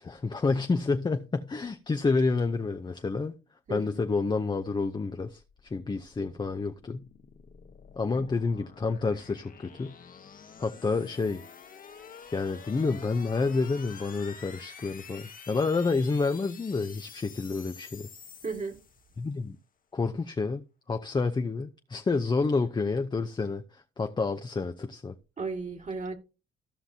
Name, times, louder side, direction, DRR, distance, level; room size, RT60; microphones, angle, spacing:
voice 1, 0.0-3.3 3.7-7.1 8.0-10.0 10.6-11.4 12.3-18.1 19.2-19.6 19.9-25.2, left 4 dB, 20° left, 0.7 m, -29 dB
voice 2, 3.7-4.0 8.1-8.2 18.4-18.8 25.4-26.2, right 4 dB, 40° right, 2.1 m, -35 dB
sound 1, 5.4-19.3, left 6 dB, 45° left, 1.2 m, -49 dB
15.5 x 5.8 x 2.8 m
cardioid pair, 90°, 20 cm